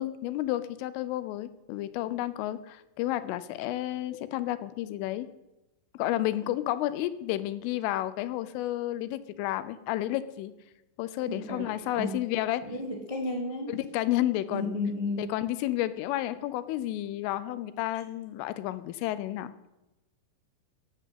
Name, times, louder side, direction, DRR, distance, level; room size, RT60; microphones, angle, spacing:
voice 1, 0.0-5.3 5.9-10.5 11.0-12.6 13.7-14.8 15.2-19.5, left 14 dB, 85° left, 14 dB, 3.3 m, -31 dB
voice 2, 11.3-12.2 12.6-13.8 14.5-15.3, left 2 dB, 10° right, -1 dB, 2.1 m, -33 dB
16.0 x 10.0 x 8.3 m, 0.98 s
omnidirectional pair, 5.7 m